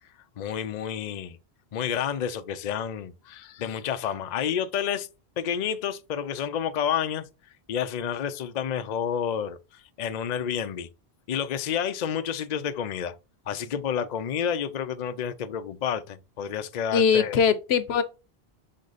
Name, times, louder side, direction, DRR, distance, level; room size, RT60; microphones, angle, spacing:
voice 1, 0.4-1.4 1.7-5.1 5.4-7.2 7.7-10.9 11.3-13.1 13.5-17.4, left 8 dB, 50° left, 0.6 m, -30 dB
voice 2, 16.9-18.0, left 6 dB, 75° left, 1.0 m, -21 dB
6.5 x 3.6 x 4.0 m
omnidirectional pair, 1.1 m